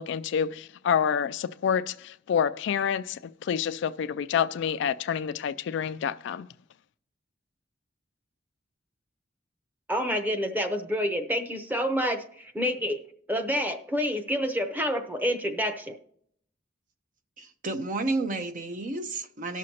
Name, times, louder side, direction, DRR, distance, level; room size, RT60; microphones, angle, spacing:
voice 1, 0.0-6.5, left 8 dB, 65° left, 0.3 m, -28 dB
voice 2, 9.9-12.2 12.6-13.0 13.3-16.0, equal, 10° right, 0.8 m, -28 dB
voice 3, 17.4-19.6, right 2 dB, 45° right, 0.8 m, -31 dB
18.5 x 6.3 x 2.8 m
head